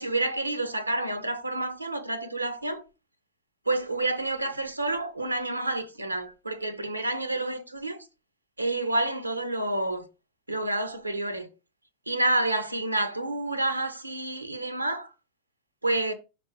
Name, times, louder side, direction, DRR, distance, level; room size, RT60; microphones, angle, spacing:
voice 1, 0.0-2.8 3.7-8.1 8.6-10.1 10.5-11.5 12.1-15.1 15.8-16.1, right 2 dB, 85° right, 0.8 m, -29 dB
5.5 x 3.5 x 5.1 m
figure-of-eight pair, 90°, 0 cm